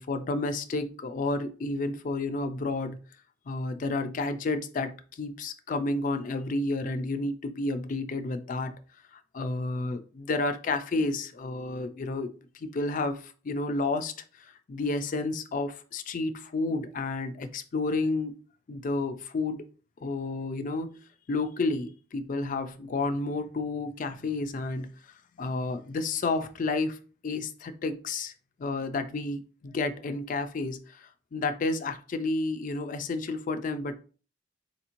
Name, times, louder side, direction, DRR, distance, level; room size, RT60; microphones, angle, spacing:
voice 1, 0.0-3.0 3.5-8.7 9.1-18.3 18.7-19.6 20.0-21.0 21.3-24.9 25.4-27.0 27.2-28.3 28.6-34.0, left 3 dB, 45° left, 9 dB, 0.4 m, -31 dB
4.2 x 2.9 x 2.5 m, 0.38 s
head